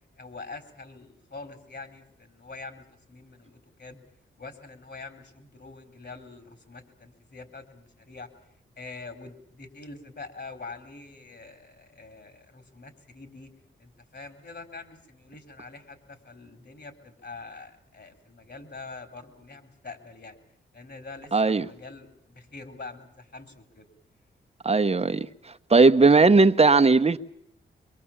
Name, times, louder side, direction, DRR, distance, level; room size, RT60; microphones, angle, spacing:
voice 1, 0.2-4.0 4.4-8.3 8.8-13.5 13.8-20.4 20.7-23.9, left 3 dB, 55° left, 4.0 m, -44 dB
voice 2, 21.3-21.7 24.6-25.3 25.7-27.2, right 3 dB, 30° right, 1.1 m, -18 dB
23.5 x 23.5 x 7.3 m
supercardioid pair, 40°, 21 cm